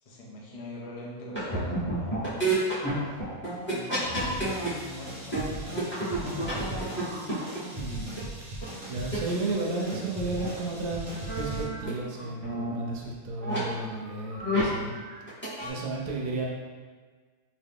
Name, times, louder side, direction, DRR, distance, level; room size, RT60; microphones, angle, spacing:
voice 1, 0.0-2.5 3.7-7.2, left 1 dB, 65° left, -3 dB, 0.3 m, -42 dB
sound 1, 1.3-4.7 5.0-8.2 8.6-8.7 9.1-9.2 9.5-9.6 9.9-10.0 10.4-10.5 10.8-11.9 12.2-12.7 13.4-13.6 14.1-14.8 15.1-15.7, right 1 dB, 10° left, 1.0 m, -31 dB
sound 2, 4.0-11.6, right 1 dB, 35° right, 0.8 m, -39 dB
voice 2, 7.7-8.1 8.8-14.9 15.6-16.5, right 2 dB, 80° right, -2 dB, 1.0 m, -33 dB
3.0 x 2.5 x 3.5 m, 1.5 s
omnidirectional pair, 1.6 m